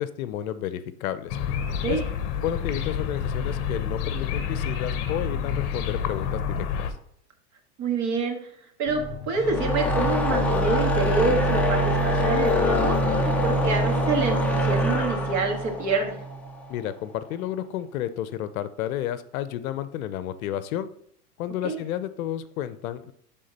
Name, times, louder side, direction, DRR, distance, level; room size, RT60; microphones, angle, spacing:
voice 1, 0.0-1.4 1.9-2.0 2.4-7.0 16.7-20.9 21.4-23.1, left 11 dB, 60° left, 13 dB, 0.7 m, -31 dB
sound 1, 1.3-6.9, left 7 dB, 40° left, 1.0 m, -28 dB
voice 2, 7.8-8.4 8.8-16.2 21.6-21.8, right 4 dB, 40° right, 3 dB, 1.9 m, -27 dB
sound 2, 8.9-11.6 12.0-12.1 12.5-12.6 12.9-13.0, left 4 dB, 25° left, 2.1 m, -43 dB
sound 3, 9.4-16.7, equal, 5° left, 0.5 m, -24 dB
11.0 x 3.8 x 4.1 m, 0.68 s
hypercardioid pair, 130°, 47 cm